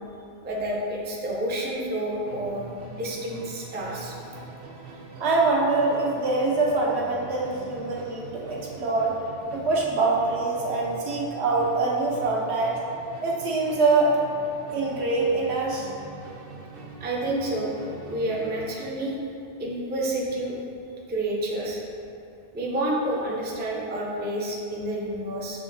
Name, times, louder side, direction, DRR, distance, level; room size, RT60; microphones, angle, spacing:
voice 1, 0.4-4.2 17.0-17.7 18.1-19.2 19.6-20.6 21.1-21.8 22.5-25.6, right 1 dB, 15° right, -3 dB, 0.3 m, -29 dB
Musical instrument, 2.2-18.9, right 3 dB, 65° right, 0.7 m, -43 dB
voice 2, 5.2-9.1 9.5-12.8 13.2-14.1 14.7-15.9, right 3 dB, 85° right, -3 dB, 1.0 m, -24 dB
6.9 x 2.8 x 2.5 m, 2.6 s
omnidirectional pair, 1.1 m